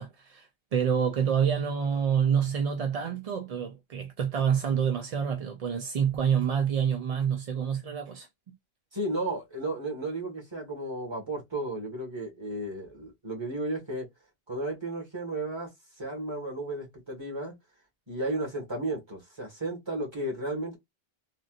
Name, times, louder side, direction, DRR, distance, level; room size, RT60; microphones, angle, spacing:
voice 1, 0.0-8.3, right 7 dB, 50° right, 0.5 m, -27 dB
voice 2, 8.9-14.1 14.5-15.7 16.0-17.5 18.1-20.8, right 2 dB, 25° right, 1.6 m, -33 dB
3.4 x 2.6 x 2.4 m
omnidirectional pair, 1.0 m